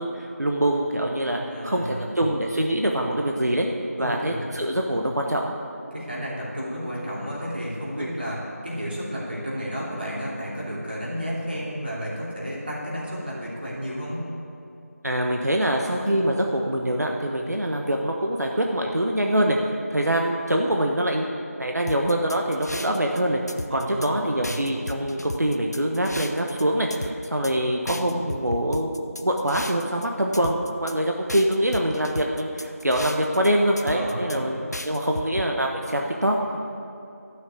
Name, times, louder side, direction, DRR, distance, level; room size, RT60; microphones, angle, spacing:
voice 1, 0.0-3.7 4.0-5.5 8.0-8.1 15.0-19.6 19.9-21.3 21.6-23.4 23.7-34.6 34.8-36.6, right 1 dB, 85° right, 1 dB, 1.2 m, -24 dB
voice 2, 1.4-2.1 4.0-4.5 5.9-14.2 23.7-24.7 27.9-28.0 33.9-34.5, equal, 40° right, -6 dB, 3.1 m, -32 dB
sound 1, 21.9-23.2 23.5-24.1 24.4-26.6 26.9-27.5 27.9-30.1 30.3-30.9 31.3-33.5 33.8-34.4 34.7-35.5, left 1 dB, 80° left, 0.7 m, -35 dB
12.5 x 6.4 x 8.4 m, 2.7 s
figure-of-eight pair, 175°, 9 cm